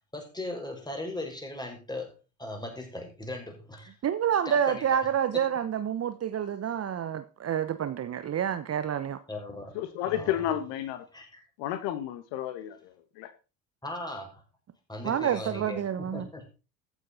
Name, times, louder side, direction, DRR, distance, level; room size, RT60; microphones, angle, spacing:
voice 1, 0.1-3.9 4.4-5.0 5.3-5.6 9.3-10.3 11.1-11.4 13.8-14.4 14.9-16.5, left 1 dB, 10° left, 6.5 m, -38 dB
voice 2, 4.0-9.2 15.0-16.2, right 9 dB, 35° right, 1.1 m, -28 dB
voice 3, 9.8-11.0 11.6-13.3, left 11 dB, 65° left, 1.8 m, -32 dB
14.5 x 9.1 x 4.3 m
hypercardioid pair, 65°, 45 cm